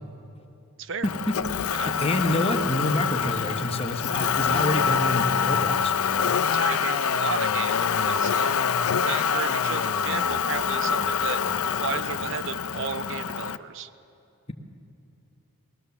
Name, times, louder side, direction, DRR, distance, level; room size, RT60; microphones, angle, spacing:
Motor vehicle (road), 1.0-13.6, left 7 dB, 70° left, 0.5 m, -25 dB
voice 1, 1.0-1.3 1.8-5.9, left 1 dB, 25° left, 4 dB, 1.1 m, -27 dB
voice 2, 6.5-8.6 9.0-11.4 11.7-13.9, right 6 dB, 55° right, 12 dB, 0.6 m, -33 dB
20.5 x 18.0 x 7.0 m, 2.8 s
head